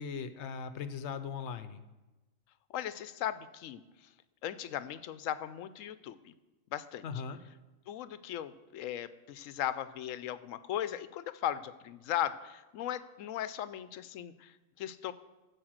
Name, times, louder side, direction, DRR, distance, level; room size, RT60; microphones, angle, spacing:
voice 1, 0.0-1.8 7.0-7.4, left 6 dB, 65° left, 11 dB, 0.9 m, -39 dB
voice 2, 2.7-3.8 4.4-6.3 6.7-7.0 7.9-15.1, left 11 dB, 85° left, 14 dB, 1.0 m, -37 dB
14.5 x 5.0 x 6.4 m, 1.1 s
omnidirectional pair, 1.3 m